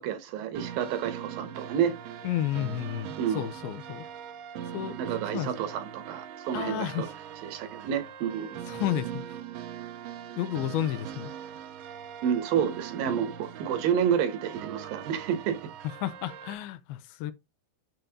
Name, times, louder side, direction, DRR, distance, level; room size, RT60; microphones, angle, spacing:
voice 1, 0.0-1.9 3.2-3.5 5.0-7.1 7.4-8.6 12.2-15.7, right 8 dB, 75° right, 2.5 m, -29 dB
sound 1, 0.6-16.6, right 9 dB, 90° right, 2.7 m, -41 dB
voice 2, 2.2-4.1 4.7-5.0 5.3-5.5 6.5-7.1 8.7-9.2 10.4-11.3 16.0-17.3, left 12 dB, 85° left, 2.5 m, -31 dB
7.6 x 7.0 x 2.8 m
omnidirectional pair, 4.5 m